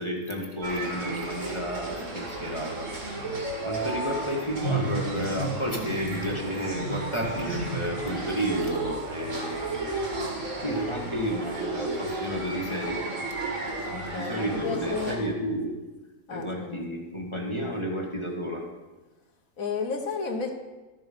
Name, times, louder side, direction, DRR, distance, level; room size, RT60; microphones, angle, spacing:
voice 1, 0.0-2.9 3.6-9.9 10.6-13.1 13.9-15.7 16.3-18.6, equal, 20° left, -1 dB, 1.5 m, -31 dB
sound 1, 0.6-15.2, right 2 dB, 60° right, 2.4 m, -33 dB
voice 2, 13.9-15.4 16.3-16.8 19.6-20.5, left 4 dB, 75° left, 3 dB, 1.7 m, -33 dB
12.5 x 7.1 x 5.2 m, 1.2 s
omnidirectional pair, 1.4 m